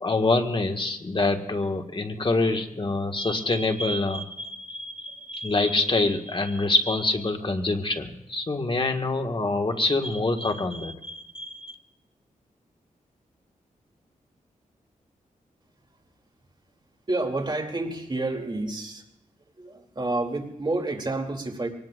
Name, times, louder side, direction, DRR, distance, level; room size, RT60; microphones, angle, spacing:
voice 1, 0.0-11.7, left 2 dB, 35° left, 4 dB, 1.8 m, -26 dB
voice 2, 17.1-19.0 19.6-21.7, right 2 dB, 35° right, 2 dB, 3.0 m, -29 dB
23.5 x 19.5 x 2.6 m, 0.83 s
cardioid pair, 70°, 14 cm